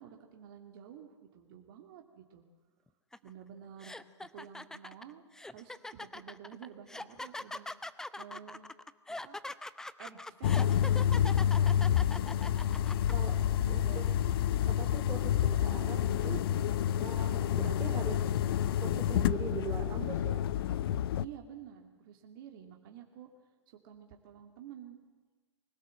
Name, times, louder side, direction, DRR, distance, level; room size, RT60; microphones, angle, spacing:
voice 1, 0.0-2.4 3.2-8.7 9.2-9.4 10.0-12.0 13.6-14.2 16.8-17.1 21.2-23.3 23.7-25.0, right 9 dB, 50° right, 3 dB, 2.5 m, -51 dB
sound 1, 3.1-3.3 3.8-13.1, left 2 dB, 5° left, 0.7 m, -42 dB
sound 2, 10.4-21.2, left 10 dB, 55° left, 0.6 m, -29 dB
voice 2, 13.7-14.1 14.6-16.5 17.0-18.3 18.7-20.5, right 6 dB, 20° right, 4 dB, 3.0 m, -42 dB
24.5 x 17.5 x 7.7 m, 1.4 s
figure-of-eight pair, 110°, 15 cm